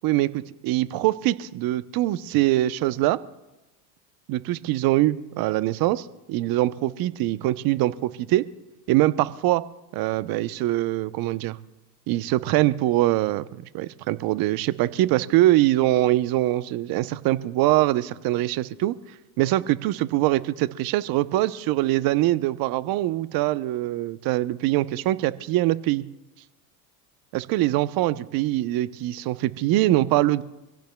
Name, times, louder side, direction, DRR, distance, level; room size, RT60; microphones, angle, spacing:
voice 1, 0.0-3.2 4.3-8.4 8.9-9.6 9.9-11.6 12.1-18.9 19.4-26.0 27.3-30.4, right 16 dB, 45° right, 14 dB, 0.9 m, -23 dB
26.0 x 16.5 x 2.3 m, 0.98 s
hypercardioid pair, 95°, 49 cm